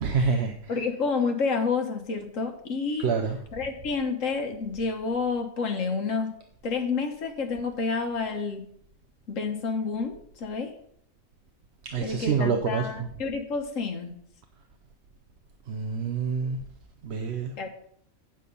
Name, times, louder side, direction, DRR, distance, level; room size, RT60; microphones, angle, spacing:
voice 1, 0.0-0.6 3.0-3.4 11.9-12.9 15.7-16.6 17.0-17.5, right 5 dB, 60° right, 4 dB, 1.0 m, -26 dB
voice 2, 0.7-3.1 3.5-6.3 6.6-8.6 9.3-10.7 12.0-14.1 17.6-17.7, left 4 dB, 75° left, 4 dB, 1.6 m, -29 dB
8.3 x 7.7 x 5.4 m, 0.67 s
omnidirectional pair, 1.4 m